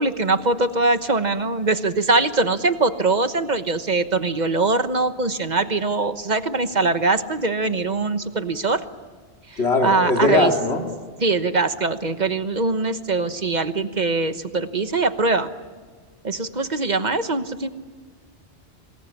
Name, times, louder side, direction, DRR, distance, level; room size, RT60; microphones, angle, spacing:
voice 1, 0.0-8.8 9.5-10.5 11.2-15.5 16.2-17.7, right 3 dB, 40° right, 10 dB, 1.3 m, -22 dB
voice 2, 9.6-10.8, left 2 dB, 70° left, 2 dB, 3.0 m, -19 dB
26.5 x 21.0 x 10.0 m, 1.5 s
omnidirectional pair, 1.1 m